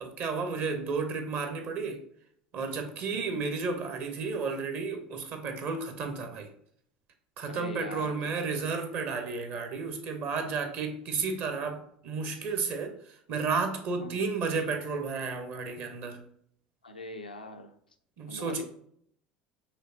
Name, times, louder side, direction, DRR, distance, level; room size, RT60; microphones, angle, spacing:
voice 1, 0.0-2.0 2.5-6.5 7.4-12.9 13.3-16.2 18.2-18.6, right 4 dB, 45° right, 0.9 m, -32 dB
voice 2, 3.1-3.4 7.5-8.5 14.0-14.3 16.8-17.8 18.3-18.6, left 2 dB, 90° left, 0.4 m, -42 dB
4.9 x 3.2 x 2.7 m
figure-of-eight pair, 70°, 5 cm